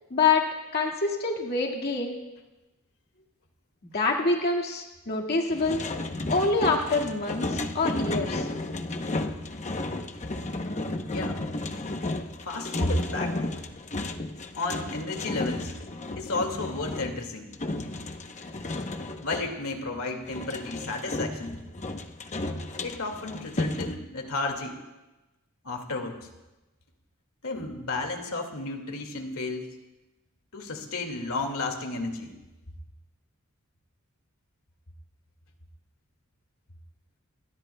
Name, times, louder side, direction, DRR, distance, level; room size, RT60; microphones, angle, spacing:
voice 1, 0.1-0.4 0.7-2.2 3.9-5.8 6.3-8.5, left 3 dB, 50° left, -1 dB, 2.0 m, -26 dB
sound 1, 5.5-19.6 20.3-24.0, left 2 dB, 35° left, 0.9 m, -33 dB
voice 2, 12.4-13.5 14.6-15.7 16.2-17.5 19.2-21.6 22.8-24.8 25.6-26.3 27.4-29.8 30.5-32.3, left 2 dB, 80° left, 3 dB, 2.2 m, -32 dB
28.5 x 22.0 x 2.3 m, 1.0 s
head